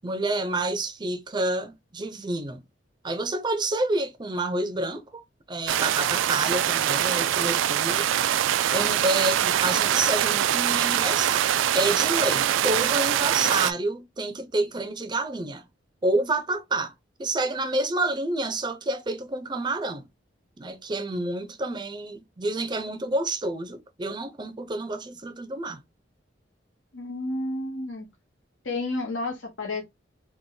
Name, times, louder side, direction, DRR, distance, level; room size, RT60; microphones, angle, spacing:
voice 1, 0.0-2.6 3.0-5.2 5.5-8.3 8.6-11.5 11.7-15.7 16.0-16.9 17.2-20.1 20.6-25.8, right 2 dB, 25° right, 0.5 m, -28 dB
sound 1, 5.7-13.7, right 11 dB, 85° right, 0.3 m, -23 dB
voice 2, 26.9-28.1 28.6-29.8, left 2 dB, 90° left, 1.0 m, -31 dB
3.6 x 2.1 x 3.8 m
head